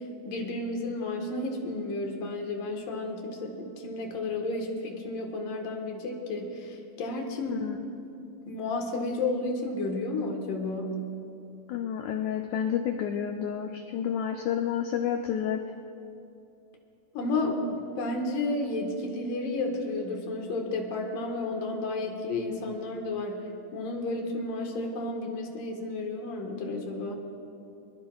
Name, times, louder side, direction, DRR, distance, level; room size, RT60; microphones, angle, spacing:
voice 1, 0.2-7.7 8.5-11.0 17.1-23.4 23.7-27.2, left 2 dB, 70° left, 2 dB, 3.0 m, -32 dB
voice 2, 11.7-15.6, left 9 dB, 85° left, 4 dB, 1.7 m, -30 dB
23.5 x 21.5 x 2.4 m, 2.7 s
omnidirectional pair, 4.2 m